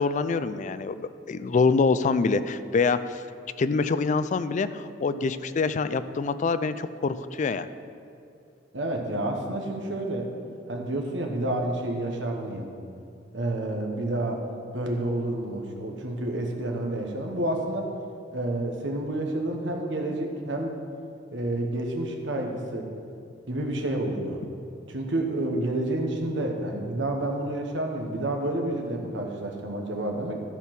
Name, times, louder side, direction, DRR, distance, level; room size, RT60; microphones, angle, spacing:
voice 1, 0.0-3.2 3.6-7.7, left 4 dB, 40° left, 13 dB, 0.3 m, -25 dB
voice 2, 8.7-10.3 10.7-12.7 13.3-14.4 14.7-17.9 18.3-20.8 21.3-22.9 23.5-24.4 24.9-30.3, right 1 dB, 80° right, 2 dB, 1.3 m, -29 dB
13.5 x 4.6 x 5.9 m, 2.5 s
head